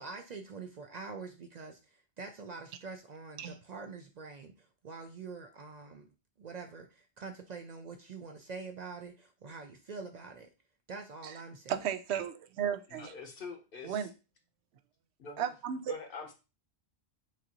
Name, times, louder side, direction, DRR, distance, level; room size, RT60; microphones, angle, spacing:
voice 1, 0.0-6.1 6.4-10.5 10.9-11.7, right 4 dB, 55° right, 0.5 m, -45 dB
voice 2, 11.7-13.1 13.8-14.1 15.4-15.9, right 9 dB, 90° right, 0.8 m, -34 dB
voice 3, 12.9-14.1 15.2-15.5 15.9-16.3, left 4 dB, 60° left, 1.0 m, -44 dB
6.1 x 2.6 x 2.9 m
omnidirectional pair, 1.1 m